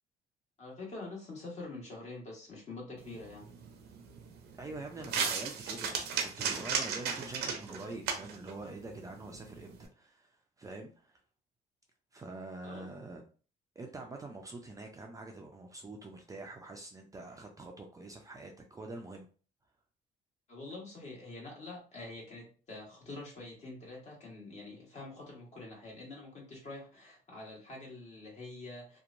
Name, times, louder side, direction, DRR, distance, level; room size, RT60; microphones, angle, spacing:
voice 1, 0.6-3.5 12.6-12.8 20.5-29.0, left 2 dB, 40° left, -2 dB, 1.3 m, -46 dB
sound 1, 3.0-9.9, right 6 dB, 80° right, 0.6 m, -37 dB
voice 2, 4.6-11.2 12.1-13.2 13.8-19.3, right 2 dB, 20° right, 2 dB, 0.4 m, -45 dB
2.8 x 2.2 x 2.5 m, 0.38 s
cardioid pair, 110°, 17 cm